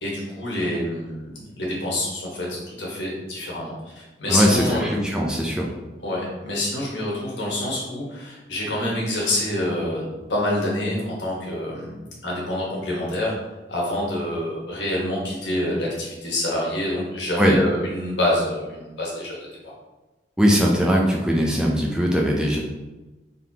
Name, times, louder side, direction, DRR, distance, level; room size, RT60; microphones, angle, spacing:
voice 1, 0.0-4.9 6.0-12.0 12.2-13.3 13.7-19.4, left 1 dB, 85° left, -4 dB, 1.4 m, -27 dB
voice 2, 4.3-5.7 17.4-17.6 20.4-22.6, equal, 5° right, -2 dB, 0.4 m, -20 dB
4.1 x 3.5 x 2.8 m, 1.1 s
head